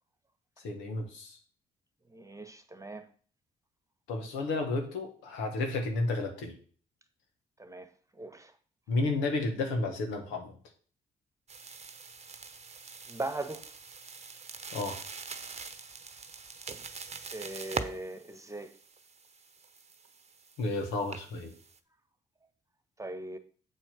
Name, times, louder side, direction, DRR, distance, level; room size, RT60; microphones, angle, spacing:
voice 1, 0.6-1.4 4.1-6.6 8.9-10.6 14.7-15.0 20.6-21.5, left 2 dB, 85° left, 1.5 m, -32 dB
voice 2, 2.1-3.1 7.6-7.9 8.1-8.5 13.1-13.6 17.3-18.7 23.0-23.4, right 2 dB, 15° right, 1.3 m, -39 dB
sound 1, 11.5-21.8, right 4 dB, 35° right, 0.9 m, -44 dB
7.4 x 4.5 x 6.1 m
hypercardioid pair, 45°, 19 cm